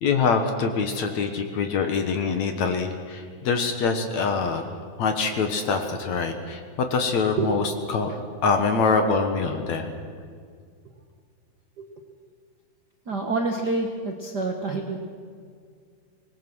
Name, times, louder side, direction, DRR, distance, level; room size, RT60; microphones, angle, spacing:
voice 1, 0.0-4.7 5.0-9.9, left 4 dB, 60° left, 6 dB, 2.2 m, -24 dB
voice 2, 13.1-15.0, right 3 dB, 50° right, 2 dB, 1.2 m, -27 dB
25.5 x 20.0 x 6.3 m, 2.1 s
omnidirectional pair, 4.2 m